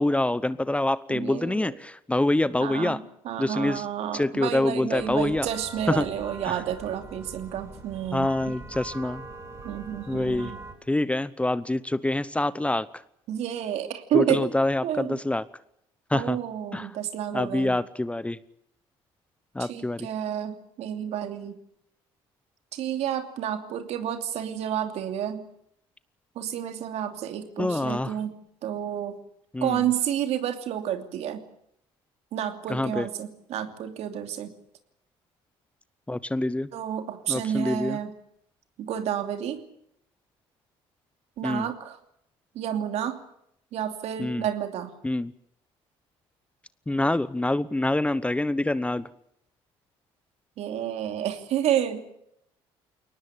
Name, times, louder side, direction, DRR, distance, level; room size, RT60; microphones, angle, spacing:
voice 1, 0.0-3.0 3.4-3.8 4.1-5.5 5.9-6.0 6.5-6.6 8.1-9.2 10.1-10.5 10.9-12.9 14.1-15.4 16.1-16.4 16.7-16.9 17.3-18.4 19.6-20.1 27.6-28.1 29.5-29.8 32.7-33.1 36.1-36.7 37.3-38.0 41.4-41.7 44.2-44.4 45.0-45.3 46.9-49.1, left 2 dB, 10° left, 17 dB, 0.9 m, -26 dB
voice 2, 1.1-1.8 2.6-8.6 9.6-10.6 13.3-14.5 14.8-15.2 16.1-17.8 19.6-21.6 22.7-25.5 26.3-29.2 29.6-31.4 32.3-34.5 36.7-38.2 38.8-39.6 41.4-42.0 42.5-43.2 43.7-44.9 50.6-52.1, right 10 dB, 65° right, 7 dB, 2.8 m, -30 dB
sound 1, 4.9-10.7, right 3 dB, 25° right, 7.6 m, -42 dB
22.0 x 19.0 x 8.5 m, 0.76 s
supercardioid pair, 75°, 12 cm